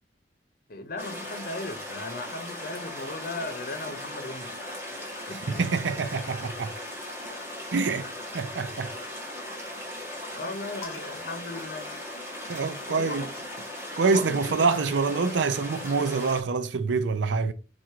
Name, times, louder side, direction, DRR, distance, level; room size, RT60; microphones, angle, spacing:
voice 1, 0.7-4.9 5.3-5.6 10.4-11.9 12.9-13.2 14.1-14.9, left 2 dB, 55° left, 0.8 m, -37 dB
sound 1, 1.0-16.4, left 1 dB, 15° right, 1.3 m, -38 dB
voice 2, 5.2-6.8 7.7-8.1 8.3-8.9 12.5-13.3 14.0-17.5, right 4 dB, 90° right, 0.5 m, -26 dB
sound 2, 10.8-12.6 13.7-15.4, left 4 dB, 15° left, 1.4 m, -50 dB
4.7 x 2.5 x 4.4 m
head